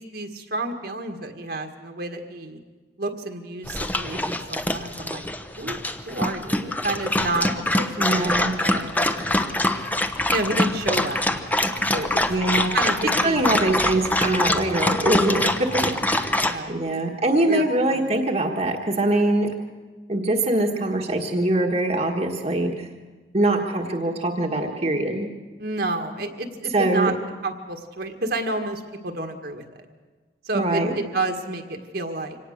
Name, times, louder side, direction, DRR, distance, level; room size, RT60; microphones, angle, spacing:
voice 1, 0.0-2.6 3.0-5.2 5.6-5.8 6.1-9.6 10.3-12.2 12.7-14.1 15.8-16.0 16.4-17.1 17.5-18.1 25.6-27.1 27.4-29.9 30.4-32.4, right 2 dB, 60° right, 4 dB, 1.8 m, -30 dB
Dog, 3.7-16.6, left 1 dB, 10° left, 0.9 m, -24 dB
voice 2, 8.0-8.5 12.3-12.7 13.2-15.7 16.1-16.3 16.7-19.5 20.1-22.9 23.3-25.3 26.7-27.1 30.5-30.9, right 1 dB, 35° right, 1 dB, 1.5 m, -23 dB
25.0 x 18.5 x 6.6 m, 1.3 s
head